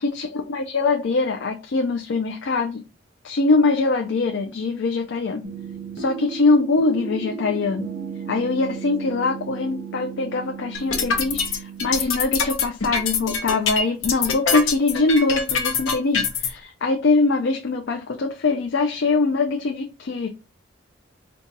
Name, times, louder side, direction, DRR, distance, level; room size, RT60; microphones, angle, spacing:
voice 1, 0.0-2.8 3.2-5.4 6.0-7.9 8.3-20.3, left 3 dB, 65° left, 0.4 m, -23 dB
sound 1, 5.4-12.1, right 6 dB, 70° right, 1.0 m, -35 dB
sound 2, 10.7-16.5, left 5 dB, 85° left, 0.8 m, -23 dB
3.9 x 2.3 x 3.8 m
head